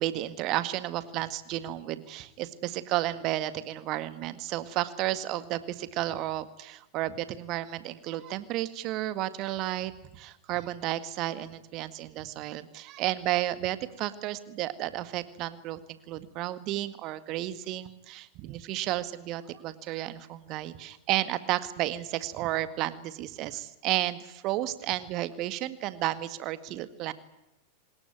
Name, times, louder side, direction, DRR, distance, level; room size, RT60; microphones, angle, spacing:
voice 1, 0.0-27.1, right 15 dB, 40° right, 13 dB, 1.9 m, -32 dB
25.5 x 20.5 x 9.5 m, 0.85 s
figure-of-eight pair, 90°, 0 cm